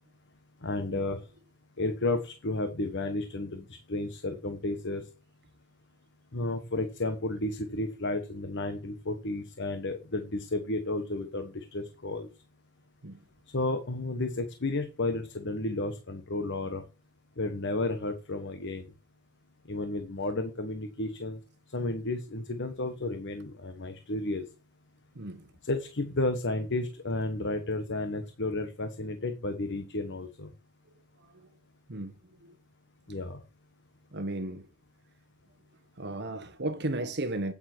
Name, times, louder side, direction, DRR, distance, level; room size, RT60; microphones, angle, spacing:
voice 1, 0.6-1.2 1.8-5.0 6.3-12.3 13.5-16.8 17.4-18.9 19.7-21.4 21.7-24.4 25.6-30.5 33.1-33.4, left 2 dB, 55° left, 1.2 m, -32 dB
voice 2, 25.1-25.5 31.2-31.5 31.9-32.1 32.4-32.6 34.1-34.7 36.0-37.5, right 2 dB, 50° right, 1.4 m, -35 dB
9.0 x 8.6 x 4.5 m
head